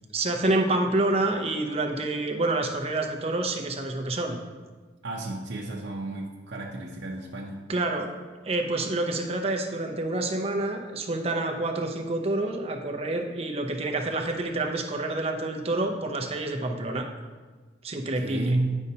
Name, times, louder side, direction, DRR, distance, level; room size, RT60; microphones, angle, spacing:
voice 1, 0.1-4.4 7.7-8.1 8.4-17.1 17.8-18.6, right 2 dB, 35° right, 2 dB, 0.6 m, -28 dB
voice 2, 5.0-7.6 18.1-18.8, right 2 dB, 80° right, -2 dB, 0.7 m, -31 dB
9.5 x 5.3 x 2.8 m, 1.4 s
head